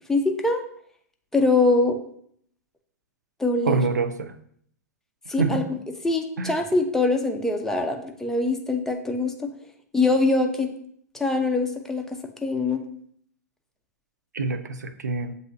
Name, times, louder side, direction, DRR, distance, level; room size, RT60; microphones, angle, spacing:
voice 1, 0.1-0.6 1.3-2.0 3.4-3.8 5.3-5.6 6.0-9.5 9.9-10.7 11.1-12.8, left 3 dB, 5° left, 3 dB, 0.5 m, -23 dB
voice 2, 3.6-4.3 5.4-5.6 6.4-6.5 14.3-15.3, right 4 dB, 80° right, 9 dB, 0.4 m, -25 dB
7.5 x 2.7 x 2.6 m, 0.65 s
figure-of-eight pair, 105°, 9 cm